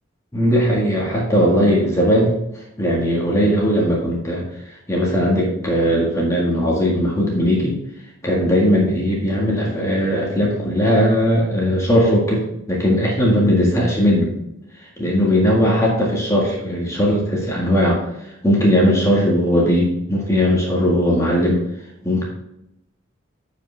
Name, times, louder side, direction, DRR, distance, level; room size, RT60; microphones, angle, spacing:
voice 1, 0.3-2.3 2.8-7.8 8.2-12.4 12.7-14.3 15.0-18.0 18.4-21.6 22.0-22.2, equal, 15° left, -3 dB, 1.8 m, -18 dB
10.5 x 5.2 x 3.4 m, 0.82 s
head